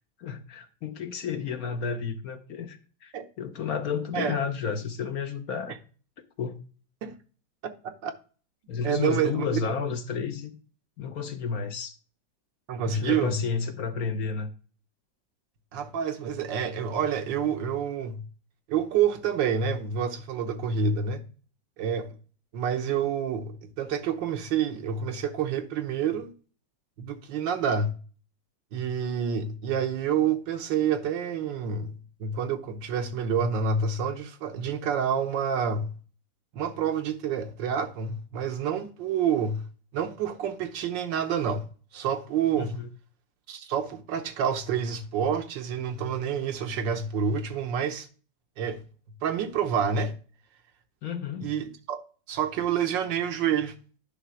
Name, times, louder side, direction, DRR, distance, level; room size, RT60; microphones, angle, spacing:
voice 1, 0.2-5.8 6.4-6.6 8.7-10.6 11.0-11.9 12.9-14.5 42.6-42.9 51.0-51.5, left 6 dB, 60° left, 1.1 m, -31 dB
voice 2, 7.6-8.1 8.8-9.7 12.7-13.4 15.7-18.2 18.7-21.2 21.8-22.2 22.5-26.3 27.0-28.0 28.7-35.9 36.5-39.6 39.9-41.7 41.9-42.8 43.5-48.1 48.6-48.8 49.2-50.1 51.4-52.0 52.3-53.7, right 7 dB, 80° right, 1.6 m, -28 dB
9.9 x 3.3 x 6.1 m
omnidirectional pair, 2.0 m